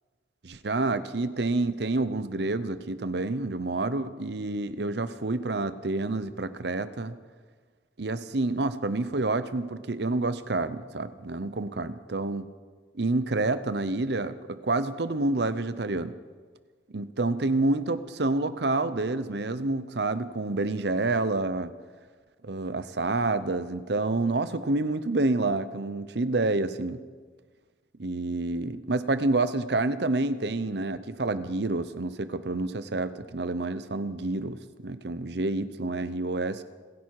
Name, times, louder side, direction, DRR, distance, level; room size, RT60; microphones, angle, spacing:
voice 1, 0.4-7.1 8.0-12.5 12.9-16.2 16.9-21.7 22.4-27.0 28.0-36.6, right 2 dB, 65° right, 13 dB, 0.8 m, -28 dB
28.5 x 10.5 x 4.8 m, 1.5 s
head